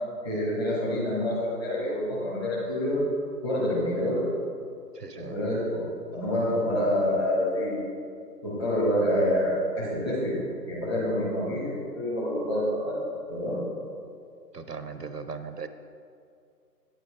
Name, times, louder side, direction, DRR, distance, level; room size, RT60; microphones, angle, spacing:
voice 1, 0.2-3.0 3.4-4.3 5.1-7.8 8.4-10.4 10.7-12.9 13.3-13.6, left 1 dB, 15° left, -9 dB, 1.8 m, -27 dB
voice 2, 4.9-5.3 14.5-15.7, right 5 dB, 70° right, 10 dB, 0.7 m, -38 dB
9.5 x 7.7 x 4.7 m, 2.3 s
figure-of-eight pair, 150°, 50 cm